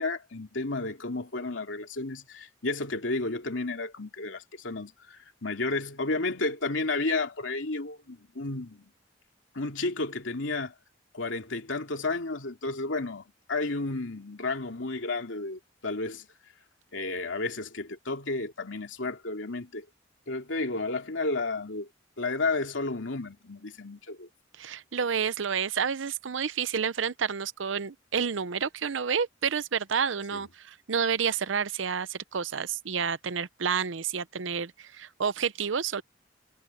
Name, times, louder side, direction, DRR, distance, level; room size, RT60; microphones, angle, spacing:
voice 1, 0.0-8.9 9.5-10.7 11.1-16.3 16.9-19.8 20.3-21.9 22.2-24.3 30.3-30.4, left 3 dB, 85° left, 2.7 m, -32 dB
voice 2, 24.6-36.0, right 6 dB, 85° right, 0.7 m, -30 dB
head